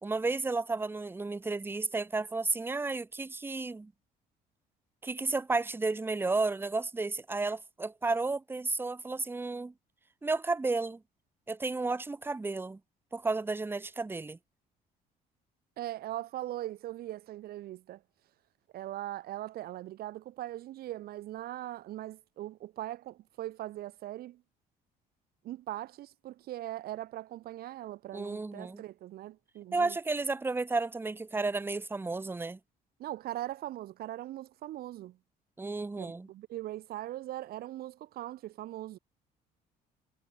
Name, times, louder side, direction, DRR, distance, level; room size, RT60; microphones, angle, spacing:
voice 1, 0.0-3.9 5.0-9.7 10.2-11.0 11.5-12.8 13.1-14.4 28.1-28.8 29.7-32.6 35.6-36.3, right 3 dB, 15° right, 0.9 m, -32 dB
voice 2, 15.8-18.0 18.7-24.4 25.4-30.0 33.0-35.2 36.0-39.0, right 14 dB, 65° right, 0.7 m, -40 dB
cardioid pair, 110°, 17 cm